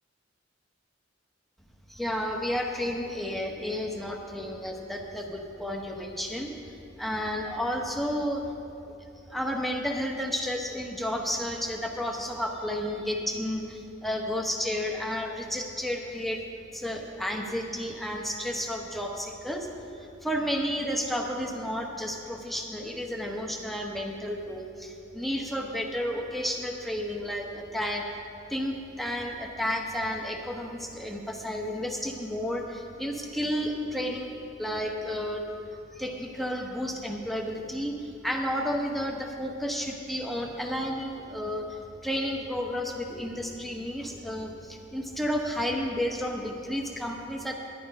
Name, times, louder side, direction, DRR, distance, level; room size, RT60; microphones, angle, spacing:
voice 1, 1.9-8.5 9.3-16.4 16.7-19.7 19.9-28.1 28.5-35.4 35.7-47.5, equal, ahead, 1 dB, 1.0 m, -32 dB
11.5 x 11.0 x 5.4 m, 2.7 s
head